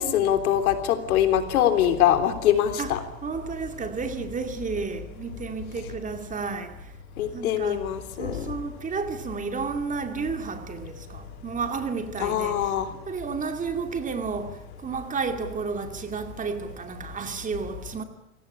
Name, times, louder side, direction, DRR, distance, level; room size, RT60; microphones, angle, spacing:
voice 1, 0.0-3.0 7.2-8.4 12.2-12.9, left 10 dB, 80° left, 3.5 m, -23 dB
voice 2, 2.8-6.9 7.3-7.8 8.2-12.7 13.1-18.0, right 5 dB, 20° right, 2.4 m, -32 dB
24.5 x 17.5 x 9.9 m
supercardioid pair, 140°, 42 cm